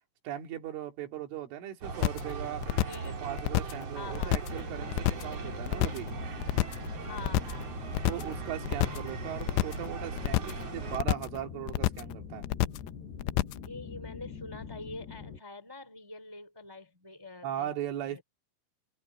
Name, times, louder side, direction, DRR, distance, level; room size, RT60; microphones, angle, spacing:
voice 1, 0.3-2.7 3.0-6.1 8.0-12.5 17.4-18.2, right 11 dB, 85° right, 5.1 m, -38 dB
sound 1, 1.8-11.0, right 4 dB, 35° right, 3.3 m, -39 dB
sound 2, 2.0-2.3 2.6-3.1 3.4-3.8 4.1-4.6 4.9-5.3 5.6-6.1 6.4-6.9 7.2-7.6 7.9-8.3 8.6-9.1 9.4-9.9 10.2-10.6 10.9-11.4 11.7-12.1 12.4-12.9 13.2-13.7, left 16 dB, 80° left, 2.6 m, -28 dB
voice 2, 2.9-3.2 3.9-4.3 7.1-7.8 13.6-17.7 18.0-18.2, left 3 dB, 10° right, 1.1 m, -45 dB
sound 3, 4.5-15.4, left 7 dB, 65° left, 5.8 m, -44 dB
omnidirectional pair, 5.5 m